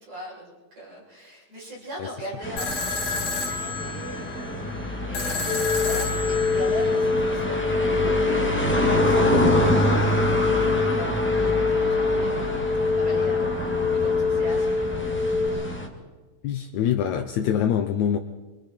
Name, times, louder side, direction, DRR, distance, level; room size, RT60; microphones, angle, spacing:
voice 1, 0.0-15.7, equal, 60° right, -6 dB, 9.5 m, -41 dB
sound 1, 2.4-15.9, equal, 5° left, 1.4 m, -26 dB
sound 2, 2.6-7.6, left 4 dB, 55° left, 3.7 m, -31 dB
sound 3, 5.5-15.5, left 4 dB, 40° right, 3.9 m, -25 dB
voice 2, 16.4-18.2, left 9 dB, 70° left, 6 dB, 1.9 m, -24 dB
26.0 x 23.0 x 4.6 m, 1.2 s
omnidirectional pair, 4.0 m